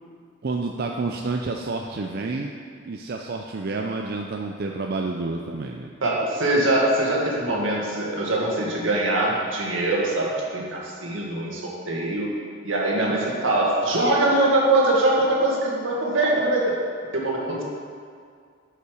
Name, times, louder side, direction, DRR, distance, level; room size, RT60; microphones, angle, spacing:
voice 1, 0.4-2.5 2.8-5.9, right 3 dB, 50° right, 1 dB, 0.5 m, -29 dB
voice 2, 6.0-12.3 12.6-16.7 17.1-17.6, right 2 dB, 80° right, -3 dB, 2.0 m, -22 dB
8.4 x 5.7 x 6.4 m, 2.2 s
head